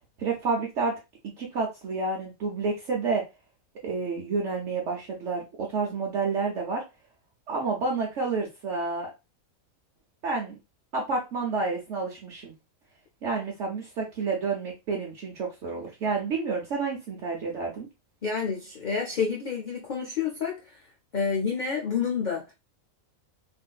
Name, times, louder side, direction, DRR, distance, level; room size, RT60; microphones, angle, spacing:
voice 1, 0.2-0.9 1.4-3.2 3.8-6.8 7.5-9.1 10.2-10.5 10.9-12.5 13.2-17.9, right 4 dB, 65° right, 1.0 m, -29 dB
voice 2, 18.2-20.8 21.1-22.4, left 6 dB, 70° left, 0.4 m, -29 dB
3.5 x 2.5 x 2.2 m
omnidirectional pair, 1.4 m